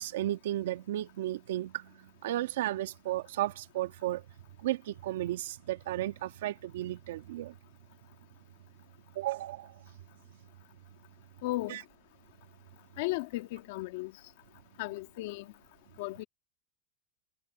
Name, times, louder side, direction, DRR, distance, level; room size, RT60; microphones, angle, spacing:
voice 1, 0.0-4.3 4.6-7.5 9.2-9.8 11.7-11.8, right 14 dB, 90° right, 1.8 m, -34 dB
voice 2, 11.4-11.8 13.0-14.1 14.8-15.5 16.0-16.2, left 19 dB, 70° left, 1.7 m, -35 dB
supercardioid pair, 130°, 0 cm